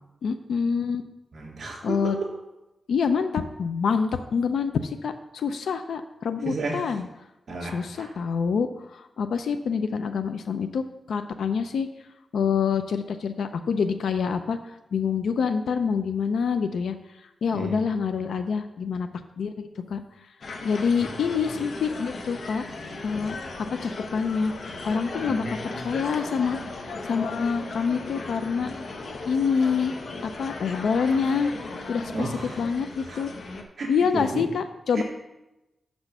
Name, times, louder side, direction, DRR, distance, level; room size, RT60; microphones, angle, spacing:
voice 1, 0.2-1.0 1.8-2.2 2.9-7.1 7.6-11.9 12.3-14.6 14.9-16.9 17.4-19.1 19.4-20.0 20.6-22.6 23.0-23.4 23.7-24.5 24.8-28.7 29.3-29.9 30.2-31.5 31.9-33.3 33.9-35.0, left 6 dB, 90° left, 8 dB, 0.5 m, -26 dB
voice 2, 1.3-2.3 6.4-6.8 7.5-8.1 17.5-17.8 25.2-25.5 32.1-32.5 33.0-33.2 33.8-34.5 34.9-35.0, right 2 dB, 60° right, -2 dB, 3.2 m, -32 dB
sound 1, 20.4-33.6, left 3 dB, 60° left, 1.0 m, -37 dB
7.1 x 6.1 x 6.5 m, 0.96 s
wide cardioid pair, 105°, 0 cm